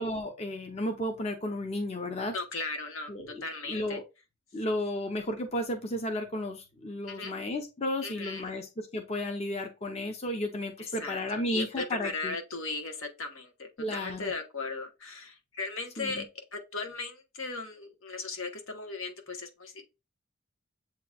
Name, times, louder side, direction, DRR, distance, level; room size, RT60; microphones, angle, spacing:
voice 1, 0.0-2.3 3.1-4.0 4.5-12.4 13.8-14.3 16.0-16.2, left 1 dB, 30° left, 0.6 m, -33 dB
voice 2, 2.3-3.1 3.4-4.0 7.1-7.4 8.0-8.5 10.8-16.2 16.5-19.8, left 3 dB, 80° left, 1.1 m, -37 dB
7.7 x 2.9 x 2.3 m
head